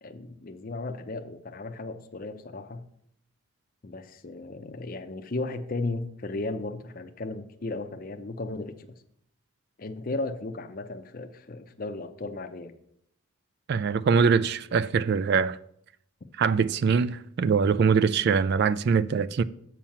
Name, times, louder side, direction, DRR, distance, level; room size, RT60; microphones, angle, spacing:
voice 1, 0.0-2.8 3.8-9.0 9.8-12.7, left 2 dB, 40° left, 0.6 m, -35 dB
voice 2, 13.7-15.6 16.4-19.4, right 5 dB, 50° right, 0.3 m, -23 dB
7.2 x 5.6 x 7.2 m
head